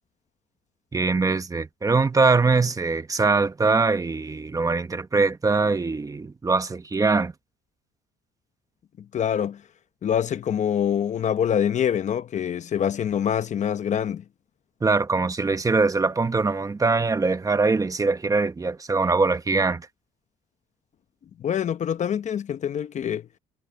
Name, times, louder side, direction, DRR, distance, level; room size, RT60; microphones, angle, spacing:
voice 1, 0.9-7.3 14.8-19.9, right 4 dB, 20° right, 1.3 m, -22 dB
voice 2, 9.1-9.6 10.0-14.2 21.4-23.3, left 9 dB, 45° left, 0.9 m, -25 dB
cardioid pair, 110°, 17 cm